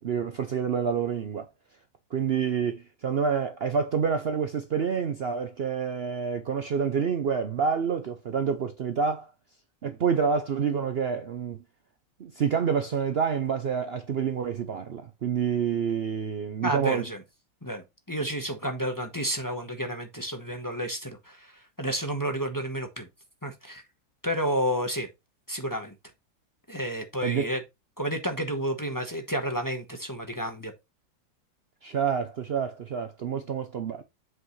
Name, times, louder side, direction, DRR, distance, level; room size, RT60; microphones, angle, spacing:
voice 1, 0.0-1.5 2.1-9.3 9.8-11.6 12.2-17.0 27.2-27.5 31.8-34.0, right 6 dB, 85° right, 0.5 m, -28 dB
voice 2, 16.6-17.2 17.6-23.1 23.4-23.8 24.2-25.1 25.5-25.9 26.7-27.6 28.0-30.7, equal, 15° left, 0.9 m, -31 dB
7.9 x 5.9 x 3.2 m
omnidirectional pair, 2.0 m